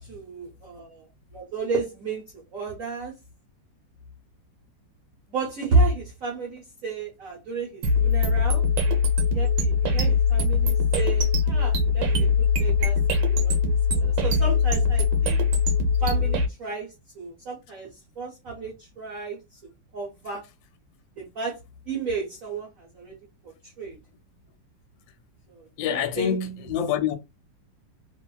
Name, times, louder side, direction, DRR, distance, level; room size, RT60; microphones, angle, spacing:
voice 1, 0.0-2.2 2.5-3.1 5.3-8.6 9.3-15.4 16.0-20.4 21.2-21.6 21.9-23.1 23.4-24.0 25.5-26.4, right 3 dB, 55° right, 1.2 m, -31 dB
sound 1, 7.8-16.5, left 4 dB, 75° right, 1.4 m, -21 dB
voice 2, 25.8-27.1, left 8 dB, 85° left, 1.3 m, -26 dB
2.9 x 2.6 x 2.2 m
omnidirectional pair, 2.0 m